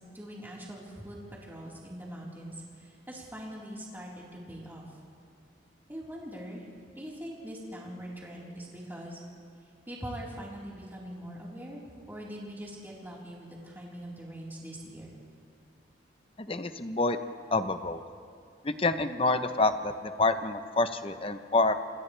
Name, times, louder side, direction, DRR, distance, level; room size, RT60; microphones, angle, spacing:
voice 1, 0.1-4.9 5.9-6.6 7.0-9.2 9.9-11.8 12.1-15.1, equal, 10° right, -5 dB, 4.2 m, -42 dB
voice 2, 16.4-17.2 17.5-18.0 18.6-21.7, left 3 dB, 30° left, 9 dB, 0.8 m, -27 dB
28.0 x 27.0 x 3.4 m, 2.4 s
head